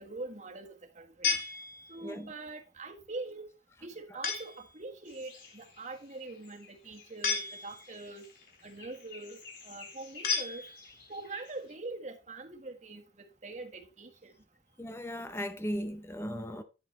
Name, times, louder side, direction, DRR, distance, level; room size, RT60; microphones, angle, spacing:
voice 1, 0.0-1.4 1.9-3.4 3.8-8.2 8.6-10.7 11.1-14.3, right 2 dB, 40° right, 1.5 m, -43 dB
sound 1, 1.2-2.2 4.2-4.7 7.2-8.1 10.2-11.1, left 5 dB, 55° left, 2.4 m, -34 dB
sound 2, 5.0-11.8, left 4 dB, 80° left, 4.4 m, -54 dB
voice 2, 14.8-16.6, equal, 15° left, 0.6 m, -37 dB
10.5 x 8.0 x 3.1 m
head